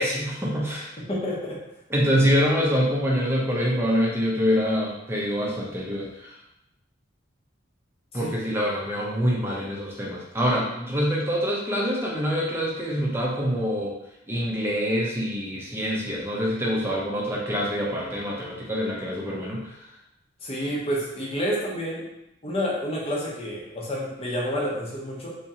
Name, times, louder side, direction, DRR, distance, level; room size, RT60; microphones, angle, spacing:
voice 1, 0.0-1.0 1.9-6.4 8.1-13.9 14.3-19.7, equal, 10° right, -3 dB, 0.7 m, -25 dB
voice 2, 1.0-1.6 8.2-8.3 20.4-22.1 22.4-25.3, equal, 30° left, -4 dB, 0.8 m, -29 dB
3.6 x 2.9 x 2.8 m, 0.84 s
head